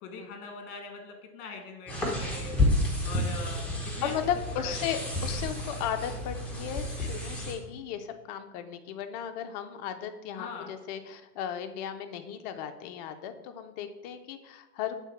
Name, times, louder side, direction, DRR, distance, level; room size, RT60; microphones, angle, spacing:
voice 1, 0.0-2.7 3.0-4.1 4.6-4.9 10.3-10.7, left 3 dB, 50° left, 4 dB, 1.3 m, -42 dB
sound 1, 1.9-7.5, left 1 dB, 5° left, 1.0 m, -30 dB
voice 2, 4.0-15.0, left 9 dB, 30° left, 7 dB, 0.4 m, -35 dB
7.2 x 3.7 x 4.1 m, 1.1 s
hypercardioid pair, 130°, 45 cm